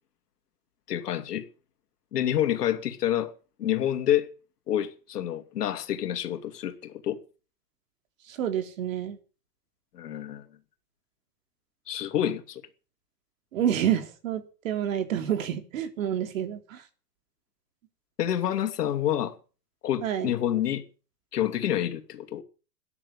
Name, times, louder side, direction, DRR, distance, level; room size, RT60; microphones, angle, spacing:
voice 1, 0.9-1.4 2.1-3.3 3.6-4.3 4.7-7.2 9.9-10.4 11.9-12.6 18.2-19.4 19.8-20.8 21.3-22.4, left 11 dB, 75° left, 2.8 m, -28 dB
voice 2, 8.3-9.2 13.5-16.8 20.0-20.3, right 10 dB, 55° right, 3.4 m, -28 dB
13.5 x 9.8 x 8.3 m
supercardioid pair, 170°, 48 cm